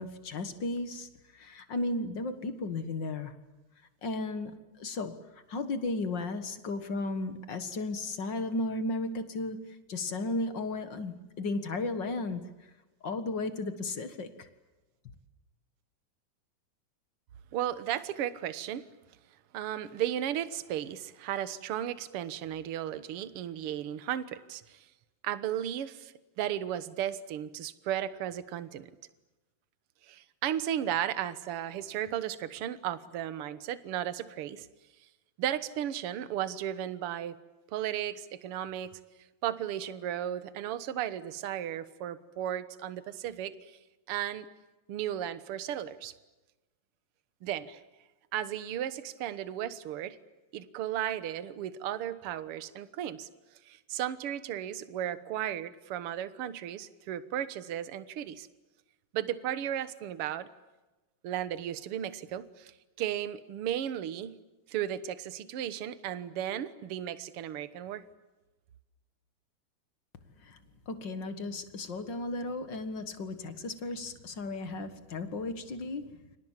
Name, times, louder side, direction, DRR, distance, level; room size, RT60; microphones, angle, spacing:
voice 1, 0.0-3.3 4.0-12.7 13.0-14.5 70.4-70.6 70.8-76.4, left 2 dB, 45° left, 9 dB, 1.7 m, -35 dB
voice 2, 17.5-18.9 19.5-24.8 25.2-28.9 30.0-34.7 35.4-37.4 37.7-38.9 39.4-43.7 44.1-44.5 44.9-46.1 47.4-47.8 48.3-50.2 50.5-53.3 53.7-58.5 59.1-60.5 61.2-62.7 63.0-64.4 64.7-68.0, right 11 dB, 60° right, 13 dB, 1.7 m, -35 dB
30.0 x 25.5 x 7.4 m, 1.1 s
omnidirectional pair, 3.8 m